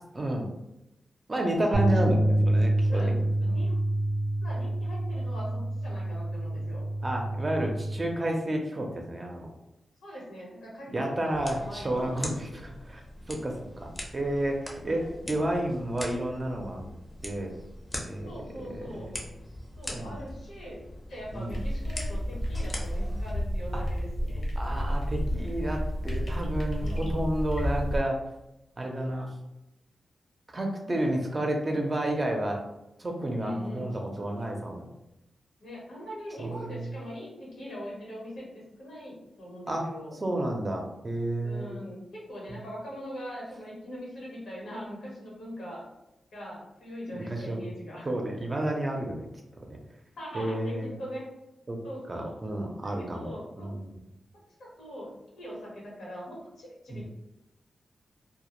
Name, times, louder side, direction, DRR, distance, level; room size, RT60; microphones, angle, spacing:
voice 1, 0.1-0.5 1.3-3.6 7.0-9.5 10.9-13.0 13.3-16.8 17.2-17.5 18.1-18.4 18.7-19.3 19.9-20.2 21.3-21.6 23.7-23.8 24.6-28.2 28.8-29.3 30.5-32.6 33.0-34.9 36.4-36.9 39.7-39.8 40.2-41.7 42.5-42.6 47.1-47.7 48.1-49.3 49.6-49.8 50.3-51.0 51.7-51.8 52.1-54.0 56.9-57.0, right 1 dB, 30° right, 1 dB, 0.5 m, -31 dB
sound 1, 1.7-8.0, right 1 dB, 90° right, 0.4 m, -27 dB
voice 2, 2.9-3.8 4.4-6.9 10.0-12.6 15.0-15.1 18.3-19.1 19.8-20.8 21.1-24.4 26.8-27.0 33.4-33.9 35.6-40.2 41.4-45.8 46.3-48.1 50.2-51.3 51.8-52.3 53.0-53.8 54.6-57.0, equal, 90° left, -4 dB, 1.0 m, -41 dB
sound 2, 11.3-23.3, left 1 dB, 25° left, 0.6 m, -42 dB
sound 3, 21.5-28.0, equal, 60° left, 0.7 m, -31 dB
2.1 x 2.0 x 2.9 m, 0.90 s
cardioid pair, 70°, 0 cm